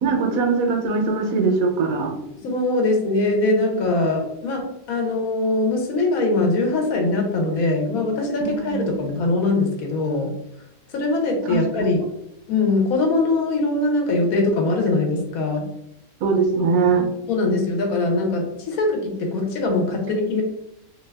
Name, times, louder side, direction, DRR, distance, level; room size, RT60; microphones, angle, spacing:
voice 1, 0.0-2.1 8.4-9.0 11.5-11.9 16.2-17.1, right 4 dB, 75° right, 2 dB, 1.0 m, -21 dB
voice 2, 2.4-10.3 10.9-12.0 12.5-15.7 17.3-20.4, left 2 dB, 75° left, 2 dB, 1.1 m, -22 dB
2.7 x 2.3 x 3.2 m, 0.81 s
omnidirectional pair, 1.6 m